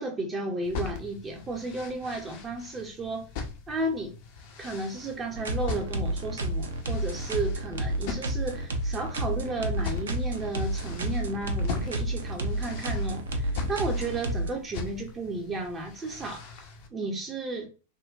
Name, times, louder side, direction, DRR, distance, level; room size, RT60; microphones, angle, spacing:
voice 1, 0.0-3.3 3.7-4.1 4.6-16.5 16.9-17.7, right 2 dB, 20° right, 0.5 m, -33 dB
sound 1, 0.6-16.9, left 5 dB, 50° left, 0.5 m, -40 dB
sound 2, 5.3-14.5, right 1 dB, 65° right, 0.5 m, -30 dB
3.7 x 2.1 x 2.4 m
figure-of-eight pair, 90°, 0 cm